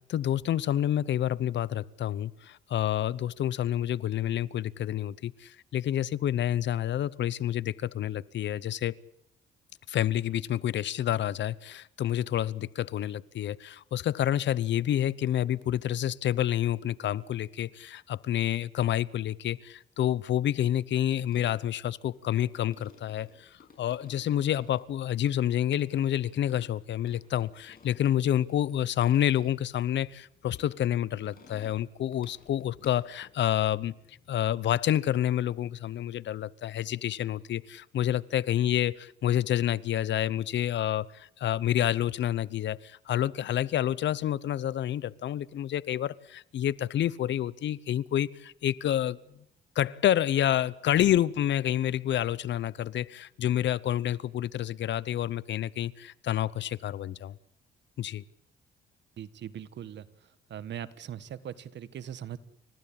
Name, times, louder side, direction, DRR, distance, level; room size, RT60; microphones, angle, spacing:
voice 1, 0.1-9.0 9.9-49.2 49.8-57.4 58.0-58.2, left 11 dB, 65° left, 21 dB, 0.8 m, -28 dB
sound 1, 21.2-34.3, left 5 dB, 50° left, 7.2 m, -58 dB
voice 2, 59.2-60.0 60.5-62.4, right 10 dB, 65° right, 14 dB, 1.5 m, -40 dB
30.0 x 15.0 x 8.6 m, 0.75 s
cardioid pair, 90°, 20 cm